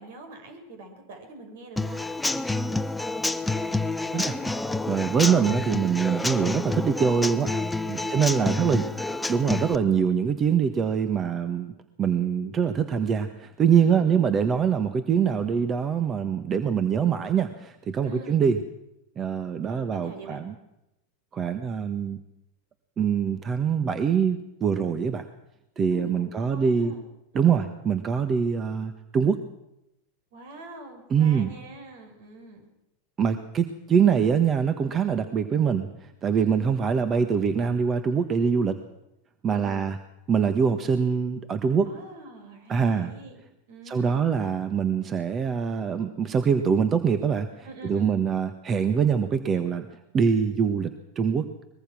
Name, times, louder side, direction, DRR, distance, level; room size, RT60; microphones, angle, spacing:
voice 1, 0.0-2.1 5.2-5.5 7.8-9.5 13.7-14.2 18.0-18.4 19.7-20.5 25.9-27.1 27.3-27.7 30.3-32.7 36.3-36.7 39.5-39.9 41.8-43.4 43.7-44.3 47.6-48.2, right 2 dB, 65° right, 5 dB, 6.1 m, -44 dB
Human voice / Acoustic guitar / Drum, 1.8-9.7, left 2 dB, 10° left, 1.1 m, -28 dB
voice 2, 4.9-8.9 9.3-11.7 12.0-18.6 19.2-20.5 21.3-22.2 23.0-25.3 25.8-26.9 27.3-29.4 31.1-31.5 33.2-35.9 36.2-38.8 39.4-40.0 40.3-41.9 42.7-43.1 43.8-49.9 50.1-51.7, right 7 dB, 30° right, 10 dB, 1.5 m, -24 dB
23.0 x 21.5 x 6.2 m, 0.89 s
hypercardioid pair, 90°, 0 cm